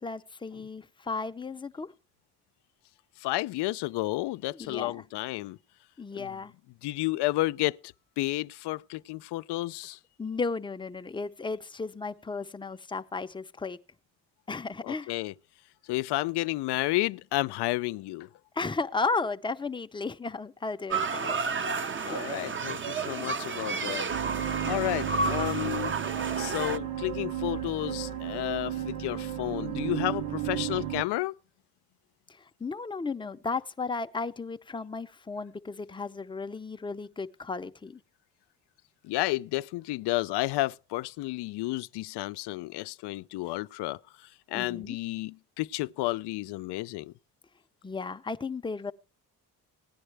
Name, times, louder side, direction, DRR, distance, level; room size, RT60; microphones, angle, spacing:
voice 1, 0.0-1.9 4.5-5.0 6.0-6.5 10.2-13.8 14.5-15.1 18.5-21.4 22.0-22.2 23.8-24.3 32.3-38.0 44.5-45.0 47.8-48.9, left 4 dB, 10° left, 0.6 m, -34 dB
voice 2, 3.2-5.6 6.1-6.3 6.8-7.8 8.2-10.0 14.8-15.3 15.9-18.3 22.0-24.1 24.7-25.9 26.4-31.3 39.0-44.0 44.5-47.1, left 18 dB, 80° left, 0.5 m, -31 dB
sound 1, 20.9-26.8, right 4 dB, 30° right, 0.7 m, -31 dB
sound 2, 24.1-31.0, right 11 dB, 60° right, 1.0 m, -33 dB
16.5 x 9.9 x 3.3 m
cardioid pair, 80°, 39 cm